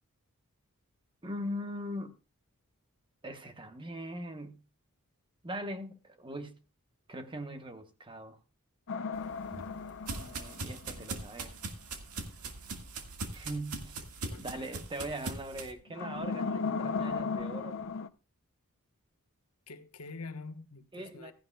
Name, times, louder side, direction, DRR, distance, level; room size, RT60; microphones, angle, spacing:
voice 1, 1.2-2.2 3.2-4.6 5.4-6.6 7.1-8.4 10.1-11.5 13.3-14.0 14.4-17.8 20.9-21.3, equal, 20° right, 1.1 m, -41 dB
sound 1, 8.9-11.3 15.9-18.1, left 4 dB, 60° left, 0.6 m, -36 dB
sound 2, 9.1-15.7, right 3 dB, 90° right, 1.9 m, -41 dB
voice 2, 14.2-14.7 19.7-21.3, left 3 dB, 80° left, 1.3 m, -46 dB
15.5 x 14.5 x 2.3 m
head